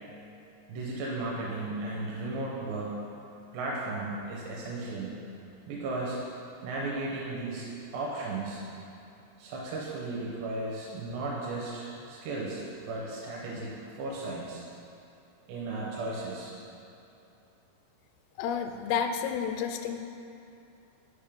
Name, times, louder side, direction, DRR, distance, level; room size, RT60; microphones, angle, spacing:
voice 1, 0.7-3.0 3.5-5.2 5.7-6.2 6.6-7.7 7.9-8.6 9.4-14.6 15.5-16.5, right 2 dB, 80° right, -5 dB, 2.9 m, -35 dB
voice 2, 18.4-20.0, left 7 dB, 85° left, 6 dB, 2.5 m, -30 dB
7.1 x 5.1 x 5.1 m, 2.8 s
omnidirectional pair, 4.9 m